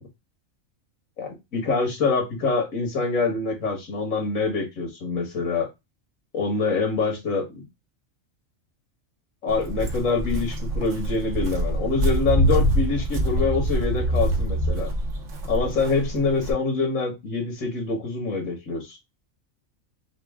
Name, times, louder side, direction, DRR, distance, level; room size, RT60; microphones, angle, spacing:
voice 1, 1.2-5.7 6.3-7.5 9.4-14.9 15.5-19.0, left 4 dB, 80° left, 2.0 m, -25 dB
Walk footsteps, 9.5-16.5, right 1 dB, 65° right, 1.5 m, -25 dB
5.7 x 2.4 x 3.5 m
omnidirectional pair, 1.4 m